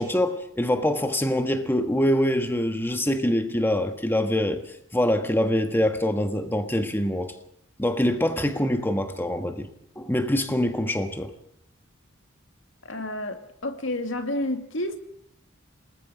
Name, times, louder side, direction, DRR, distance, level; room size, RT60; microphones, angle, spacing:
voice 1, 0.0-4.6 4.9-7.3 7.8-9.7 10.0-11.3, left 1 dB, 10° left, 1.5 m, -24 dB
voice 2, 12.8-15.0, left 1 dB, 70° left, 2.4 m, -30 dB
28.0 x 20.5 x 5.2 m
head